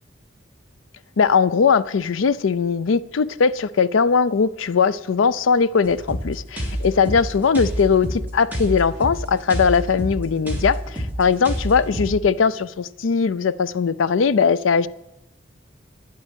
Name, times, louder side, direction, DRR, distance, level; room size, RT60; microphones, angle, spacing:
voice 1, 1.2-14.9, left 5 dB, 90° left, 0.5 m, -20 dB
sound 1, 5.8-12.1, equal, 10° right, 2.8 m, -28 dB
10.0 x 7.6 x 9.0 m
head